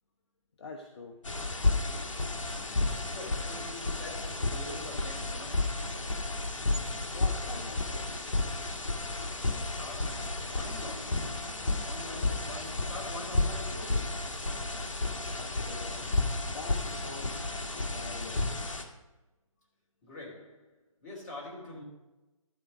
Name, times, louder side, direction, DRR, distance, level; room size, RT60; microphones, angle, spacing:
voice 1, 0.6-1.2 7.1-8.2 15.4-16.0 16.4-17.6 17.8-18.5, left 3 dB, 50° left, 1.0 m, -45 dB
sound 1, 1.2-18.8, left 2 dB, 65° left, 1.5 m, -32 dB
voice 2, 3.0-5.9 9.7-14.3 20.0-20.7 21.0-21.8, left 2 dB, 30° left, 3.2 m, -45 dB
12.0 x 4.7 x 6.1 m
figure-of-eight pair, 145°, 18 cm